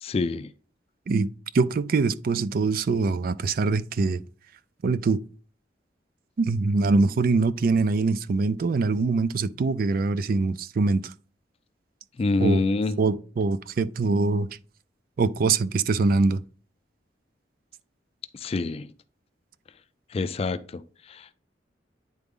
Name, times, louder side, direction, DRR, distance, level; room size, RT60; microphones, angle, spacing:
voice 1, 0.0-0.5 12.2-13.0 18.3-18.9 20.1-21.3, left 3 dB, 35° left, 0.3 m, -27 dB
voice 2, 1.5-4.2 4.8-5.2 6.4-11.1 12.4-12.6 13.0-14.5 15.2-16.4, right 3 dB, 55° right, 0.4 m, -23 dB
9.5 x 3.9 x 3.6 m
head